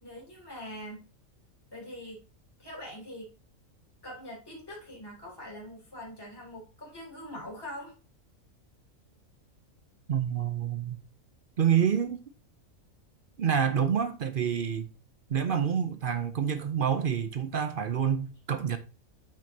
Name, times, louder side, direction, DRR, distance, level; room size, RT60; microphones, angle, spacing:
voice 1, 0.0-1.0 1.7-2.2 2.6-3.3 4.0-8.0, equal, 15° left, 2.9 m, -43 dB
voice 2, 10.1-11.0 11.6-12.2 13.4-14.9 15.3-18.8, right 8 dB, 55° right, 0.7 m, -27 dB
8.4 x 6.2 x 2.7 m
omnidirectional pair, 1.4 m